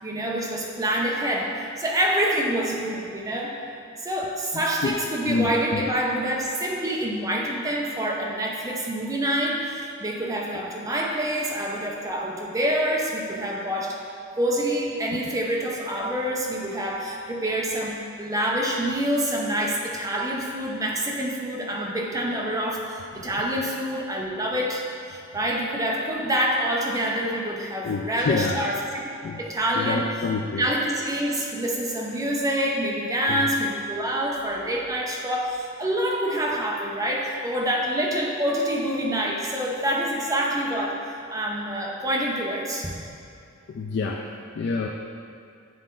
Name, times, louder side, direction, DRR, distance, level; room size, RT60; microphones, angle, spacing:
voice 1, 0.0-1.5 1.8-3.5 4.0-14.0 14.4-24.8 25.1-28.8 29.4-30.3 30.6-41.0 41.3-43.0, right 1 dB, 15° right, -2 dB, 0.6 m, -26 dB
voice 2, 5.3-5.8 27.8-28.6 29.2-29.4 29.8-30.7 33.3-33.4 43.7-44.2 44.6-44.9, left 4 dB, 55° left, 1 dB, 0.3 m, -27 dB
7.6 x 4.2 x 3.8 m, 2.5 s
head